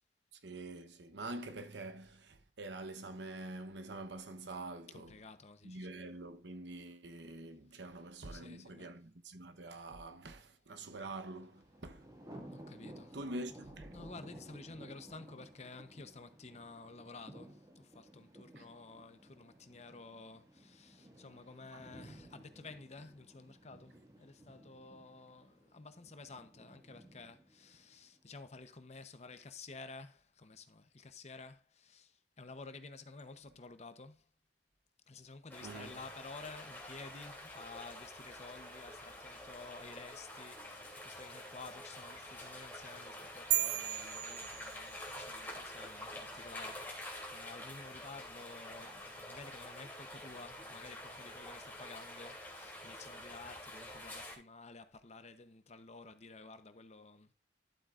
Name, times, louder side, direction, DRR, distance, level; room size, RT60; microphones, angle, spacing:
voice 1, 0.4-5.1 5.6-12.1 13.1-13.9 18.6-18.7 21.7-21.8 35.6-36.0, right 2 dB, 85° right, 1.0 m, -46 dB
voice 2, 4.9-6.0 8.3-9.0 12.4-13.2 13.9-34.3 35.1-57.3, left 3 dB, 40° left, 0.9 m, -52 dB
Thunder, 11.4-28.4, right 1 dB, 20° right, 1.9 m, -56 dB
sound 1, 35.5-54.3, left 1 dB, 10° left, 2.9 m, -48 dB
sound 2, 43.5-45.2, right 13 dB, 65° right, 0.4 m, -35 dB
12.0 x 7.7 x 2.5 m
head